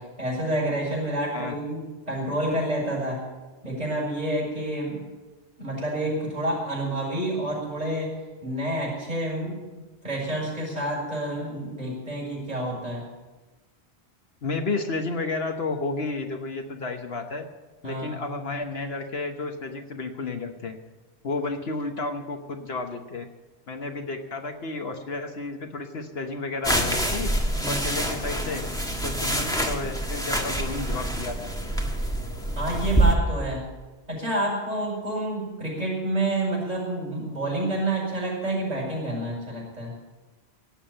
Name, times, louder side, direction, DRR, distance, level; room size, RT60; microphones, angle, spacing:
voice 1, 0.0-3.2 3.6-5.0 5.6-8.1 8.4-9.6 10.0-13.0 17.8-18.1 27.6-27.9 32.5-33.6 34.1-39.9, right 1 dB, 35° right, -4 dB, 7.1 m, -28 dB
voice 2, 14.4-17.5 17.8-20.8 21.2-23.3 23.7-27.3 27.7-28.6 29.0-31.5, left 3 dB, 60° left, 5 dB, 1.3 m, -31 dB
sound 1, 26.6-33.1, right 1 dB, 5° left, 1.5 m, -26 dB
17.5 x 7.4 x 8.8 m, 1.2 s
omnidirectional pair, 1.2 m